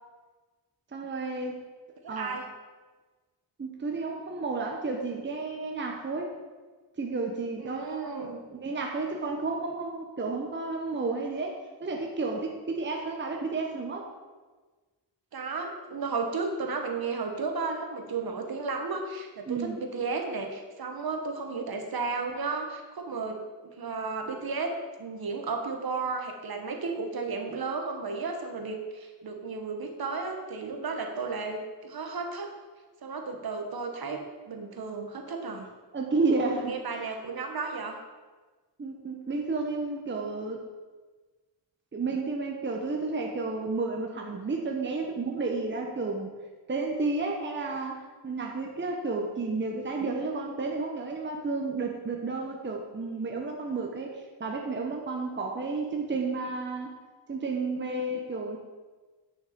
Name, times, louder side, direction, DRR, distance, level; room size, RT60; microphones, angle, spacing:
voice 1, 0.9-1.6 2.1-2.4 3.6-6.3 7.0-14.1 19.5-19.8 35.9-36.7 38.8-40.6 41.9-46.3 46.7-56.9 57.3-58.6, right 3 dB, 25° right, 1 dB, 1.1 m, -31 dB
voice 2, 2.0-2.4 7.6-8.4 15.3-23.4 23.8-32.5 33.0-35.6 36.6-38.0, right 4 dB, 55° right, 3 dB, 1.5 m, -33 dB
10.0 x 6.4 x 6.8 m, 1.3 s
wide cardioid pair, 165°, 44 cm